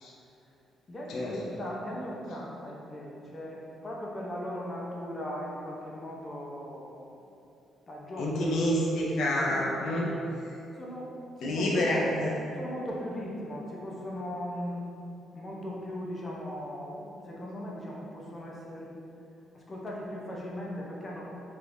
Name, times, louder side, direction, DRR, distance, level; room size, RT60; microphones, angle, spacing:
voice 1, 0.9-7.2 7.9-8.6 9.5-10.0 10.7-12.0 12.5-14.8 15.3-19.0 19.5-21.2, equal, 30° left, -3 dB, 0.6 m, -38 dB
voice 2, 8.2-10.1 11.4-12.3, left 1 dB, 80° left, -4 dB, 0.5 m, -28 dB
3.3 x 3.1 x 2.6 m, 2.8 s
cardioid pair, 90°, 0 cm